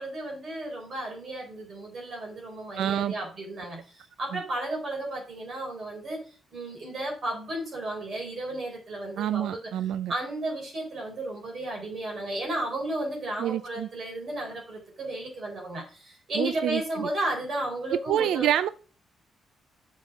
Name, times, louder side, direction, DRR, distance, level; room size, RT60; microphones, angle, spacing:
voice 1, 0.0-6.2 6.5-9.6 10.1-18.5, right 1 dB, 40° right, 4.0 m, -33 dB
voice 2, 2.8-3.1 4.3-4.4 9.2-10.1 13.4-13.9 16.3-17.1 18.1-18.7, right 11 dB, 90° right, 0.3 m, -27 dB
7.3 x 5.0 x 4.8 m
cardioid pair, 160°, 0 cm